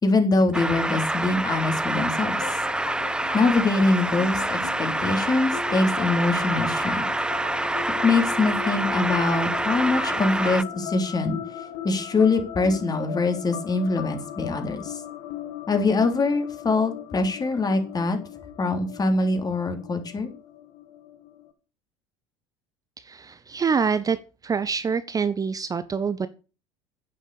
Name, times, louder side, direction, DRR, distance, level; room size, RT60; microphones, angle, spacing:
voice 1, 0.0-2.5 3.3-7.1 8.0-11.4 11.8-15.0 15.7-18.2 18.6-20.3, left 3 dB, 25° left, 6 dB, 3.4 m, -23 dB
sound 1, 0.5-10.6, right 2 dB, 5° right, 0.5 m, -27 dB
sound 2, 2.0-21.5, left 8 dB, 60° left, 2.2 m, -38 dB
voice 2, 23.0-26.3, right 6 dB, 25° right, 13 dB, 0.9 m, -26 dB
10.5 x 8.6 x 7.0 m, 0.34 s
figure-of-eight pair, 70°, 15 cm